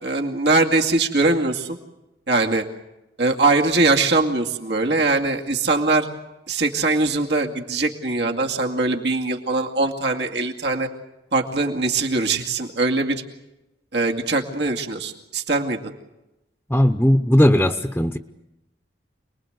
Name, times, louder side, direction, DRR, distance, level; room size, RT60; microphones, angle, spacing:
voice 1, 0.0-1.8 2.3-2.6 3.2-6.1 6.5-10.9 11.3-13.2 13.9-15.8, right 3 dB, 75° right, 2 dB, 2.3 m, -21 dB
voice 2, 16.7-18.2, equal, 10° left, 7 dB, 0.8 m, -17 dB
27.5 x 21.0 x 8.0 m, 0.96 s
head